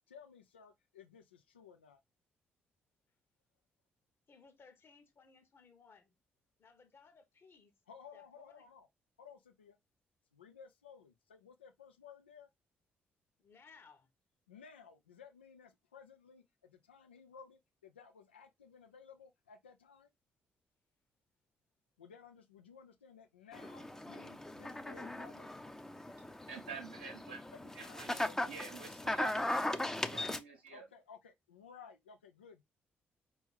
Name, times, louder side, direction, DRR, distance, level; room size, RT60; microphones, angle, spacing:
voice 1, 0.1-2.0 7.9-8.9 9.2-9.8 10.3-12.5 14.5-20.1 22.0-25.5 27.5-28.6 30.7-32.6, left 6 dB, 80° left, 0.5 m, -57 dB
voice 2, 4.3-6.1 6.6-7.7 8.1-8.7 13.4-14.1, left 5 dB, 40° left, 1.3 m, -61 dB
sound 1, 23.5-30.4, left 1 dB, 10° left, 0.6 m, -38 dB
voice 3, 26.5-27.4 27.7-30.8, right 5 dB, 80° right, 0.9 m, -48 dB
5.1 x 3.0 x 3.3 m
figure-of-eight pair, 40°, 6 cm